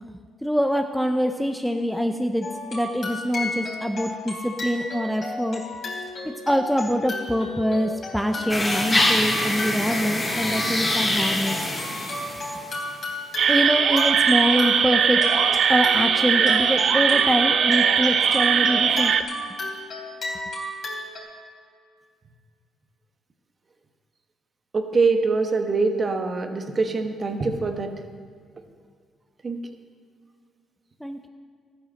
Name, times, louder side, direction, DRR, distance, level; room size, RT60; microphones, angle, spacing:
voice 1, 0.4-5.6 6.2-11.6 13.5-15.3 15.7-19.1 31.0-31.2, equal, ahead, 5 dB, 0.7 m, -24 dB
sound 1, 2.4-21.2, left 2 dB, 50° left, 3.5 m, -34 dB
sound 2, 8.5-12.9, left 1 dB, 15° left, 2.4 m, -25 dB
sound 3, 13.4-19.2, right 7 dB, 60° right, 0.6 m, -20 dB
voice 2, 24.7-27.9 29.4-29.6, right 4 dB, 35° right, 5 dB, 1.3 m, -23 dB
13.0 x 9.2 x 6.4 m, 2.1 s
cardioid pair, 90°, 0 cm